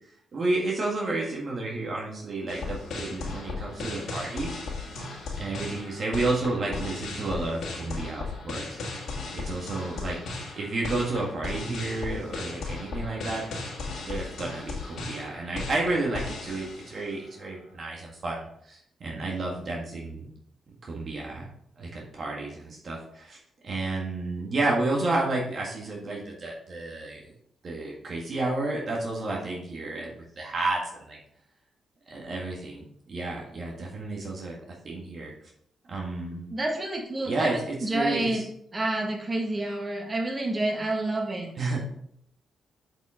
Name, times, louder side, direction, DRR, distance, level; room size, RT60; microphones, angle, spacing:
voice 1, 0.3-4.6 4.9-5.1 5.4-8.8 9.3-10.2 10.6-13.5 14.1-20.3 20.8-21.5 21.8-23.4 23.6-27.2 27.6-31.2 32.1-34.6 34.8-35.3 35.9-36.5 37.2-38.4 41.6-41.8, right 2 dB, 55° right, -2 dB, 1.8 m, -31 dB
sound 1, 2.5-17.2, left 3 dB, 70° left, 1.9 m, -36 dB
voice 2, 36.5-38.4 38.7-41.5, right 2 dB, 35° right, 1 dB, 2.0 m, -29 dB
7.6 x 5.3 x 3.7 m, 0.70 s
hypercardioid pair, 45°, 0 cm